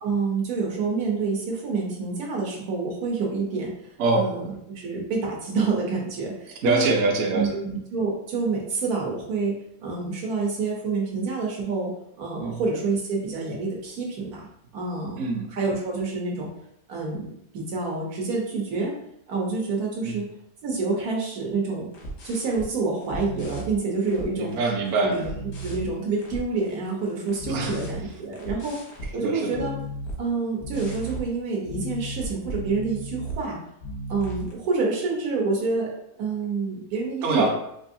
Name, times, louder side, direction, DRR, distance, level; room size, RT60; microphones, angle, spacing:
voice 1, 0.0-3.7 4.1-4.5 4.7-6.9 7.3-11.9 12.2-14.4 14.7-15.2 15.5-16.5 16.9-18.9 19.3-20.2 20.6-21.9 22.2-24.5 25.0-25.3 25.6-28.8 29.1-29.7 30.2-33.6 34.1-35.9 36.2-37.5, right 4 dB, 90° right, -1 dB, 1.4 m, -27 dB
voice 2, 4.0-4.3 6.5-7.5 12.4-12.6 15.2-15.5 20.0-20.2 24.4-25.2 27.5-27.8 29.1-29.5 37.2-37.5, right 3 dB, 65° right, 1 dB, 0.9 m, -24 dB
sound 1, 21.9-22.7 23.0-24.6 24.9-29.2 29.5-30.2 30.6-31.3 31.7-33.4 33.8-34.5, right 1 dB, 85° left, 1.4 m, -35 dB
3.8 x 2.6 x 2.6 m, 0.77 s
omnidirectional pair, 1.5 m